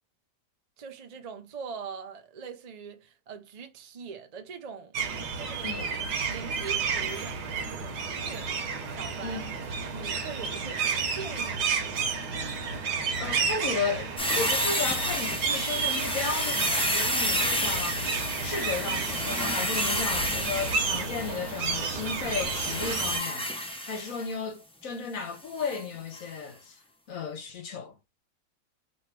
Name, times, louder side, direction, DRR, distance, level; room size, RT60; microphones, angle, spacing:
voice 1, 0.8-4.9 5.4-5.9 6.2-8.6 8.9-9.4 9.9-12.3, right 6 dB, 85° right, 0.3 m, -42 dB
sound 1, 4.9-23.2, right 5 dB, 70° right, 1.4 m, -31 dB
voice 2, 5.6-5.9 9.2-9.5 13.2-18.0 18.4-23.5 23.9-26.8 27.1-27.9, left 5 dB, 55° left, 1.2 m, -34 dB
sound 2, 14.2-24.3 25.6-25.8 26.1-26.2, left 1 dB, 10° left, 0.4 m, -31 dB
3.2 x 3.1 x 4.7 m
omnidirectional pair, 1.9 m